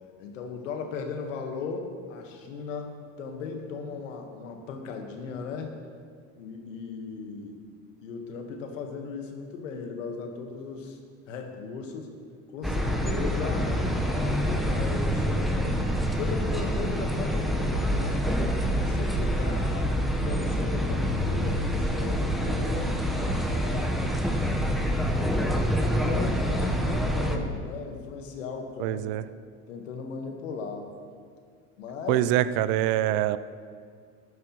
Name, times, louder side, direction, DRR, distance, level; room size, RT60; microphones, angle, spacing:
voice 1, 0.2-5.8 6.4-7.6 8.0-11.0 11.3-12.1 12.5-13.7 14.0-18.3 18.7-22.9 23.4-24.1 25.8-29.0 29.7-30.9 31.8-32.3, left 5 dB, 90° left, 3 dB, 1.5 m, -37 dB
sound 1, 12.6-27.4, equal, ahead, 1.0 m, -26 dB
voice 2, 28.8-29.2 32.1-33.4, right 13 dB, 65° right, 15 dB, 0.6 m, -24 dB
13.0 x 11.0 x 3.1 m, 2.1 s
supercardioid pair, 95°, 37 cm